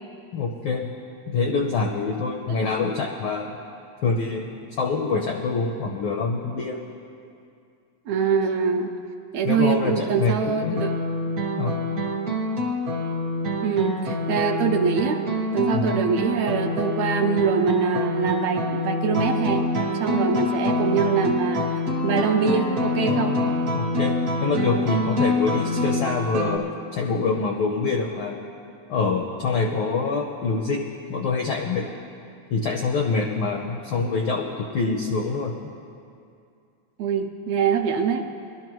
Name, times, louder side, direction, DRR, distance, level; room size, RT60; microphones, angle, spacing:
voice 1, 0.3-0.9 1.3-3.5 4.0-6.8 9.4-10.8 11.6-11.8 15.7-16.0 23.7-24.1 24.4-28.4 28.9-31.9 32.5-35.5, left 4 dB, 80° left, 2 dB, 1.1 m, -25 dB
voice 2, 8.1-8.9 9.3-10.9 13.6-15.2 15.5-19.6 20.0-21.6 22.0-23.3 37.0-38.2, right 6 dB, 80° right, 3 dB, 1.8 m, -23 dB
sound 1, 10.6-26.6, left 1 dB, 50° right, 1.0 m, -26 dB
21.5 x 12.5 x 3.1 m, 2.5 s
omnidirectional pair, 3.4 m